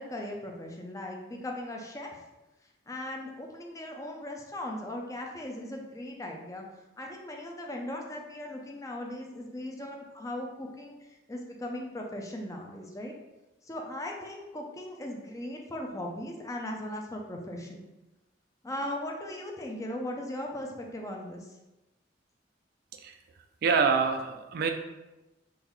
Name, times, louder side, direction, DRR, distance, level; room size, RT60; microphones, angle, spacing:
voice 1, 0.0-2.1 2.9-6.6 7.0-11.0 11.3-13.1 13.6-17.8 18.6-21.5, left 1 dB, 15° left, 1 dB, 0.5 m, -38 dB
voice 2, 23.6-24.7, right 5 dB, 55° right, 6 dB, 0.3 m, -26 dB
3.8 x 3.1 x 3.0 m, 1.0 s
head